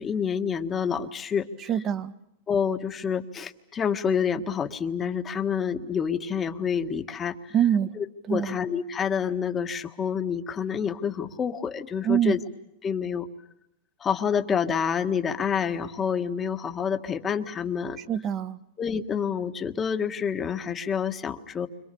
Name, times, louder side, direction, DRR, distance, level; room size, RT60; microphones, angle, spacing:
voice 1, 0.0-1.4 2.5-7.5 7.9-12.4 12.8-13.3 14.0-18.0 18.8-21.7, left 7 dB, 20° left, 8 dB, 1.6 m, -28 dB
voice 2, 1.7-2.1 7.5-7.9 8.3-8.5 12.0-12.4 18.0-18.6, right 9 dB, 30° right, 13 dB, 1.3 m, -24 dB
29.5 x 26.0 x 7.0 m, 0.84 s
supercardioid pair, 145°, 0 cm